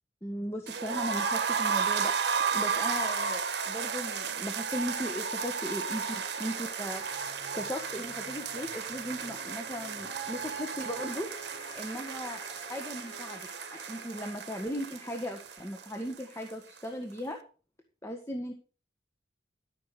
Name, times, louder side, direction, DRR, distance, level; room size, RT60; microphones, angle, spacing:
voice 1, 0.2-2.1 2.5-7.3 7.5-11.3 11.7-12.4 12.7-13.4 13.7-17.4 18.0-18.5, equal, 15° left, 3 dB, 1.6 m, -37 dB
sound 1, 0.7-16.5 16.8-16.9 17.2-17.3, right 6 dB, 65° right, 1.4 m, -33 dB
sound 2, 5.9-16.1, left 1 dB, 65° left, 5.0 m, -49 dB
13.5 x 6.7 x 6.1 m, 0.37 s
head